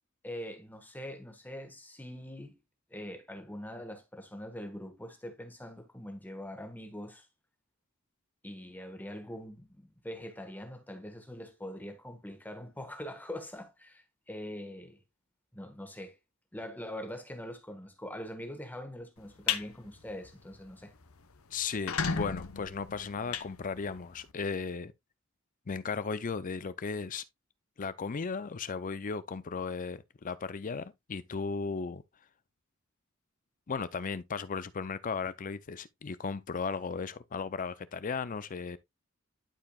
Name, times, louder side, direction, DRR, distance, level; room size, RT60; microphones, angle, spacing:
voice 1, 0.2-2.6 2.9-7.3 8.4-15.0 15.5-16.2 16.5-20.9, left 1 dB, 10° left, 1.3 m, -43 dB
sound 1, 19.2-19.6 20.1-20.3 20.7-20.8 21.0-21.1 21.6-24.2, left 6 dB, 85° left, 0.9 m, -34 dB
voice 2, 21.5-24.9 25.7-27.2 27.8-32.0 33.7-38.8, left 5 dB, 40° left, 0.5 m, -36 dB
12.0 x 4.8 x 2.3 m
head